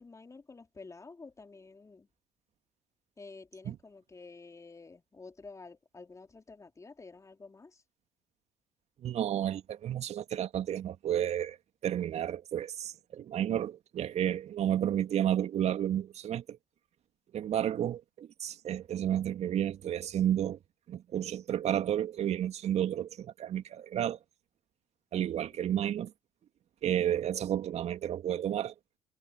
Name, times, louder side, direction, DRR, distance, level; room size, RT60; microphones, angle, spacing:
voice 1, 0.0-2.1 3.2-7.8 25.1-25.5, left 3 dB, 20° left, 3.2 m, -50 dB
voice 2, 9.0-11.6 11.8-16.6 17.3-20.6 20.9-24.2 25.1-26.1 26.8-28.7, right 10 dB, 45° right, 2.3 m, -31 dB
figure-of-eight pair, 55°, 15 cm